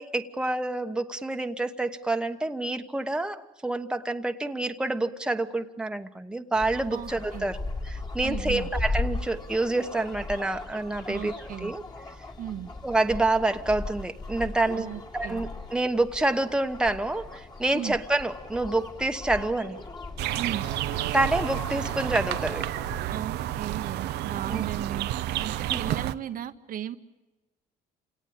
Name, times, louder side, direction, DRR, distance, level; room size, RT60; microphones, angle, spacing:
voice 1, 0.0-11.8 12.8-14.9 15.1-19.8 21.1-22.6 24.5-24.6 25.7-26.0, right 2 dB, 5° right, 6 dB, 1.1 m, -28 dB
sound 1, 6.5-23.0, left 2 dB, 25° left, 2.3 m, -37 dB
voice 2, 6.9-7.5 8.2-8.7 11.1-11.7 12.4-12.7 14.7-15.4 17.7-18.0 20.3-20.6 23.1-25.1 25.4-27.0, right 10 dB, 55° right, 8 dB, 1.0 m, -36 dB
sound 2, 20.2-26.1, right 13 dB, 80° right, 0.8 m, -30 dB
28.5 x 18.5 x 8.9 m, 1.1 s
cardioid pair, 110°, 17 cm